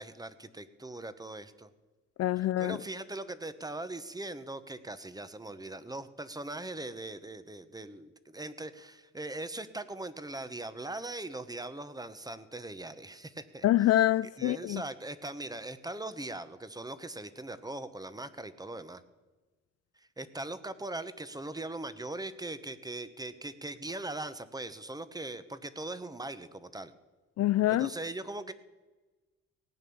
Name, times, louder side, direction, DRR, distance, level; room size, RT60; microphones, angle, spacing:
voice 1, 0.0-1.7 2.6-13.7 13.9-14.0 14.4-19.0 20.0-26.9 27.7-28.5, right 2 dB, 10° right, 1.0 m, -40 dB
voice 2, 2.2-2.8 13.6-14.8 27.4-27.9, left 14 dB, 55° left, 0.4 m, -25 dB
17.5 x 9.2 x 7.0 m
cardioid pair, 90°, 30 cm